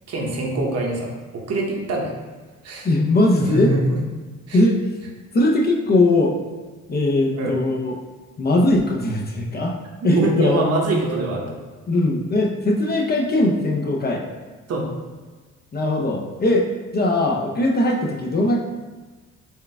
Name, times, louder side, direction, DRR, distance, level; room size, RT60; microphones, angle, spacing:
voice 1, 0.1-2.2 2.6-2.9 3.4-4.0 4.5-4.6 7.3-7.6 10.0-11.6 14.7-14.9, right 2 dB, 55° right, -1 dB, 0.9 m, -24 dB
voice 2, 2.8-3.7 4.5-4.8 5.3-6.3 6.9-8.0 8.4-9.8 10.0-10.7 11.9-14.2 15.7-16.7 16.9-18.6, left 2 dB, 35° left, 0 dB, 0.5 m, -20 dB
4.4 x 2.3 x 3.4 m, 1.3 s
cardioid pair, 90°, 30 cm